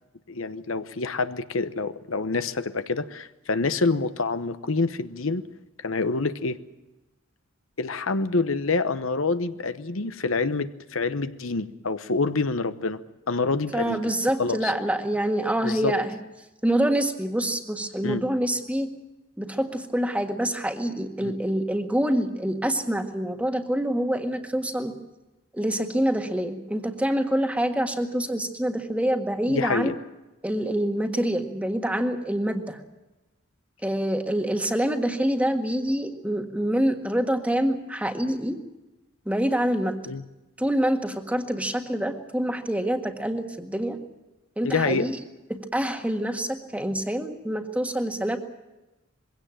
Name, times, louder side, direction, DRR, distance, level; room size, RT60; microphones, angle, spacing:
voice 1, 0.3-5.4 5.8-6.6 7.8-13.0 13.3-14.0 14.4-14.7 15.6-15.9 18.0-18.2 21.2-21.3 29.5-30.0 40.1-40.2 44.6-45.1, left 3 dB, 70° left, 11 dB, 1.0 m, -27 dB
voice 2, 13.7-16.2 16.6-18.9 19.4-24.9 25.5-29.9 30.4-32.8 33.8-38.6 39.2-40.0 40.6-44.0 44.6-45.2 45.5-48.4, right 1 dB, 5° right, 5 dB, 1.7 m, -26 dB
22.5 x 17.0 x 8.9 m, 1.0 s
head